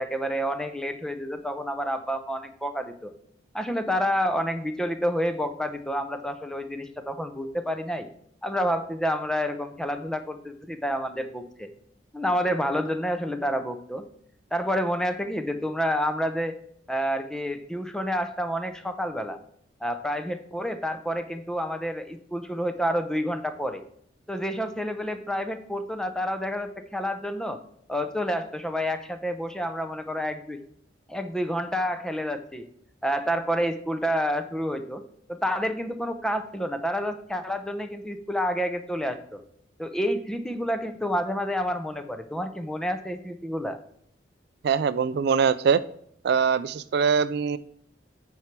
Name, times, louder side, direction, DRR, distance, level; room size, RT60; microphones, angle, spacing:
voice 1, 0.0-3.1 3.5-8.1 8.4-11.7 12.1-14.0 14.5-16.5 16.9-19.4 19.8-23.8 24.3-27.6 27.9-30.6 31.1-32.7 33.0-35.0 35.3-39.4 39.8-43.8, equal, 5° left, 8 dB, 0.6 m, -29 dB
voice 2, 44.6-45.8 46.2-47.6, right 6 dB, 60° right, 15 dB, 0.4 m, -22 dB
8.9 x 4.7 x 5.9 m, 0.67 s
head